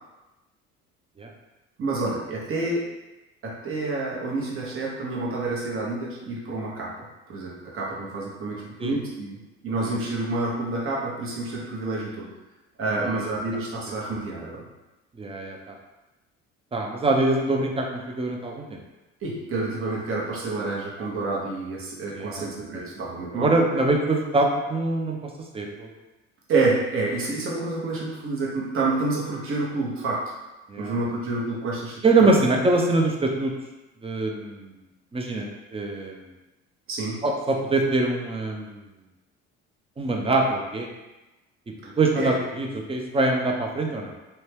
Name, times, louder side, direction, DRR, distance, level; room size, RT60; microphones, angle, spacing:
voice 1, 1.8-2.8 3.4-6.9 7.3-12.3 12.8-14.7 19.2-23.5 26.5-30.3 30.8-32.3 36.9-37.2 42.2-42.3, right 3 dB, 45° right, -4 dB, 0.9 m, -28 dB
voice 2, 13.0-13.4 15.2-15.7 16.7-18.8 22.1-22.5 22.7-22.9 23.3-25.2 25.5-25.9 30.7-31.0 32.0-33.5 34.0-34.7 35.1-36.3 37.2-38.8 40.0-40.9 42.0-44.1, right 2 dB, 20° right, 2 dB, 0.5 m, -24 dB
2.7 x 2.2 x 3.2 m, 1.0 s
supercardioid pair, 80°, 30 cm